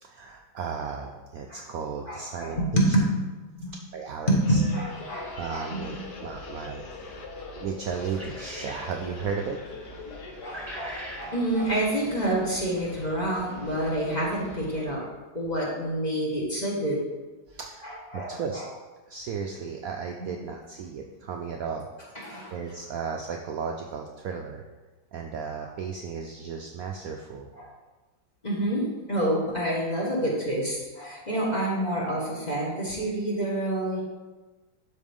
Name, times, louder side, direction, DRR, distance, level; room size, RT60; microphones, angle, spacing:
voice 1, 0.0-3.0 3.7-4.6 5.3-6.8 7.1-7.2 7.6-9.6 17.5-17.9 18.1-18.6 19.1-21.9 22.5-24.6 25.1-27.5, right 6 dB, 85° right, 2 dB, 0.7 m, -35 dB
voice 2, 2.1-3.1 3.5-3.7 4.3-5.8 10.4-15.1 15.3-17.0 17.8-18.3 20.2-20.3 22.2-22.5 27.6-27.7 28.4-28.8 29.1-34.0, right 1 dB, 25° left, -4 dB, 1.4 m, -27 dB
sound 1, 4.4-14.9, left 3 dB, 60° left, 1.4 m, -42 dB
sound 2, 8.1-8.9 10.4-11.3, equal, 15° right, 1.9 m, -40 dB
12.0 x 4.2 x 3.6 m, 1.2 s
omnidirectional pair, 2.2 m